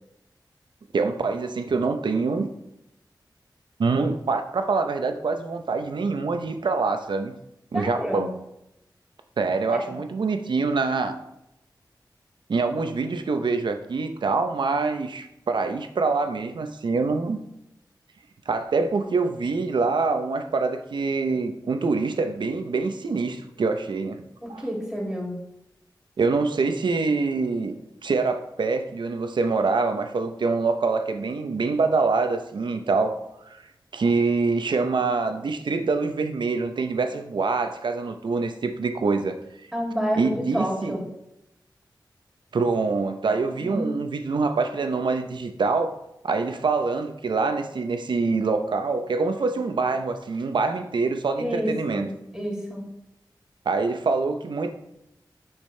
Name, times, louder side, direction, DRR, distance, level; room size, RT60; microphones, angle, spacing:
voice 1, 0.9-2.5 3.8-7.3 7.7-8.4 9.4-11.2 12.5-17.4 18.5-24.2 24.5-24.6 26.2-33.6 33.9-39.4 40.2-41.0 42.5-46.0 46.2-52.1 53.7-54.7, right 4 dB, 80° right, 7 dB, 0.7 m, -25 dB
voice 2, 7.7-8.3 9.7-9.8 24.4-25.3 39.7-41.0 43.6-43.9 51.4-52.8, equal, 5° right, -2 dB, 2.6 m, -29 dB
8.9 x 5.9 x 3.3 m, 0.85 s
wide cardioid pair, 65°, 8 cm